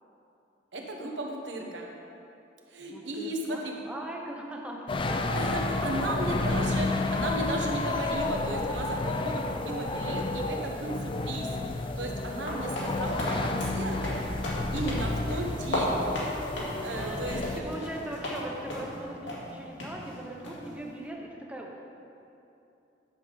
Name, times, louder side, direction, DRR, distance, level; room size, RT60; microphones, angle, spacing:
voice 1, 0.7-1.9 2.7-3.7 5.3-11.5 11.8-14.0 14.3-16.0 16.8-17.7, right 1 dB, 80° right, 0 dB, 1.2 m, -35 dB
voice 2, 2.8-5.3 12.6-12.9 16.8-21.8, right 1 dB, 5° right, -1 dB, 0.8 m, -40 dB
sound 1, 4.9-17.6, left 2 dB, 30° left, 0.4 m, -31 dB
sound 2, 12.5-18.4 18.7-19.0 19.3-19.4 19.8-19.9 20.4-20.7, left 1 dB, 80° left, 2.1 m, -34 dB
10.0 x 7.0 x 3.9 m, 2.8 s
head